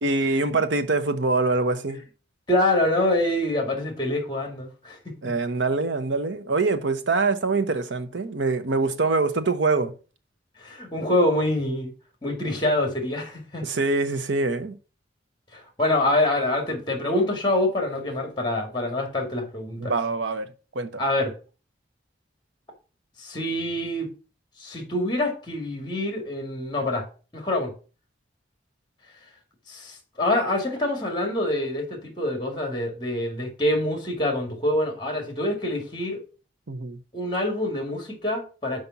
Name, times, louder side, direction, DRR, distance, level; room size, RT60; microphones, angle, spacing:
voice 1, 0.0-2.0 5.2-9.9 13.6-14.8 19.8-20.5 20.7-21.0 36.7-37.0, right 3 dB, 80° right, 0.8 m, -24 dB
voice 2, 2.5-5.0 5.2-5.3 10.6-11.9 12.2-13.7 15.5-19.9 21.0-21.3 23.2-24.1 24.6-27.1 27.3-27.7 29.7-36.2 37.1-38.8, left 1 dB, 25° left, 2.1 m, -25 dB
5.4 x 5.1 x 5.8 m
head